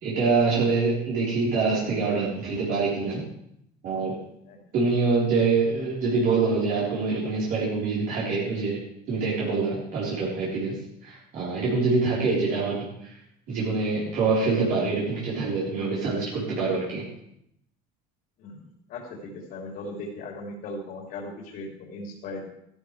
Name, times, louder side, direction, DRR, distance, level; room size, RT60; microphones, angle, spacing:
voice 1, 0.0-3.2 3.8-4.2 4.7-8.8 9.1-13.2 13.5-17.0, right 4 dB, 55° right, -7 dB, 4.3 m, -25 dB
voice 2, 18.9-22.4, left 2 dB, 55° left, -1 dB, 3.5 m, -38 dB
14.5 x 13.5 x 3.4 m, 0.75 s
cardioid pair, 140°, 18 cm